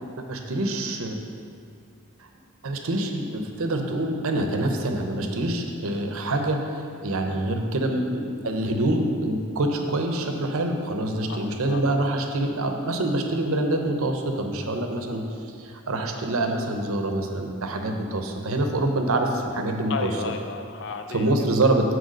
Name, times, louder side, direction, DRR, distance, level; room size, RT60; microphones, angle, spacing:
voice 1, 0.3-1.2 2.6-15.2 15.6-20.1 21.1-21.9, right 1 dB, 75° right, 4 dB, 0.7 m, -26 dB
voice 2, 11.3-11.9 19.2-19.5 19.9-21.3, left 4 dB, 55° left, 6 dB, 0.5 m, -34 dB
6.5 x 4.5 x 6.3 m, 2.4 s
head